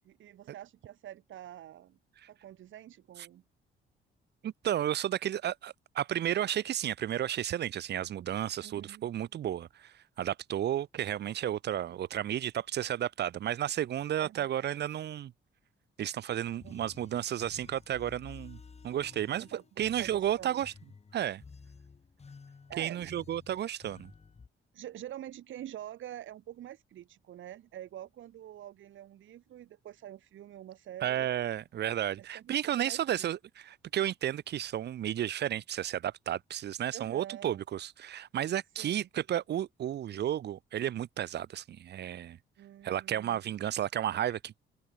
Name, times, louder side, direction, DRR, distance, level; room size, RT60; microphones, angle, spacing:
voice 1, 0.0-2.0 2.3-3.4 8.6-9.0 14.2-14.5 16.6-16.8 19.4-19.6 20.0-20.6 22.7-23.2 24.7-31.3 32.2-33.3 36.9-37.5 38.8-39.1 42.6-43.4, right 12 dB, 75° right, 7.5 m, -46 dB
voice 2, 4.4-15.3 16.0-18.6 18.8-20.7 21.1-21.4 22.8-24.1 31.0-42.4 42.8-44.5, right 11 dB, 60° right, 0.8 m, -33 dB
sound 1, 16.4-24.5, left 5 dB, 30° left, 3.3 m, -53 dB
open air
cardioid pair, 90°, 20 cm